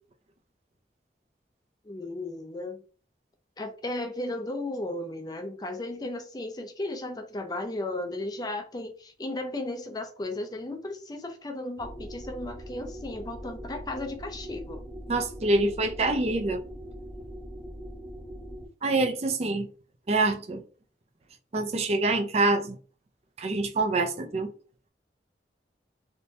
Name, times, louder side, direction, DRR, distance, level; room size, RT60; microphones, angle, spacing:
voice 1, 1.9-2.8 3.6-14.9, left 2 dB, 20° left, 0.4 m, -35 dB
sound 1, 11.8-18.7, equal, ahead, 0.9 m, -41 dB
voice 2, 15.1-16.6 18.8-19.7 20.1-20.6 21.5-22.8 23.4-24.5, right 2 dB, 35° right, 0.4 m, -25 dB
3.5 x 2.7 x 2.7 m
head